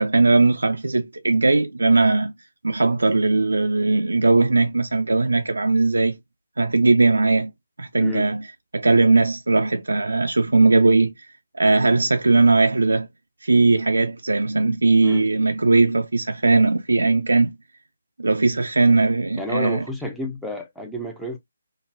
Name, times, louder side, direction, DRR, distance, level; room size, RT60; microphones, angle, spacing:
voice 1, 0.0-2.3 2.6-6.2 6.6-7.5 7.8-8.5 8.7-11.1 11.5-13.1 13.4-17.5 18.2-19.8, right 3 dB, 75° right, 0.3 m, -19 dB
voice 2, 19.4-21.4, left 1 dB, ahead, 0.5 m, -31 dB
3.9 x 2.1 x 2.5 m
figure-of-eight pair, 145°, 0 cm